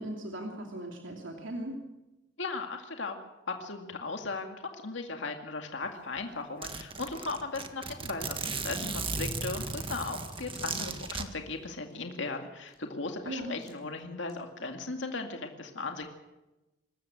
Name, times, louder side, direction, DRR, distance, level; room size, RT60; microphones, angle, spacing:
voice 1, 0.0-1.7 13.2-13.6, right 1 dB, 85° right, 1 dB, 2.9 m, -38 dB
voice 2, 2.4-3.2 3.5-4.6 4.8-16.1, left 3 dB, 70° left, 4 dB, 2.2 m, -37 dB
Zipper (clothing), 5.8-5.9 6.2-6.3 6.6-11.2, right 4 dB, 30° right, 1.6 m, -36 dB
sound 1, 9.9-13.0 13.6-14.0 14.3-14.7 15.0-15.2, left 1 dB, 20° left, 4.5 m, -52 dB
26.0 x 14.0 x 7.7 m, 1.0 s
head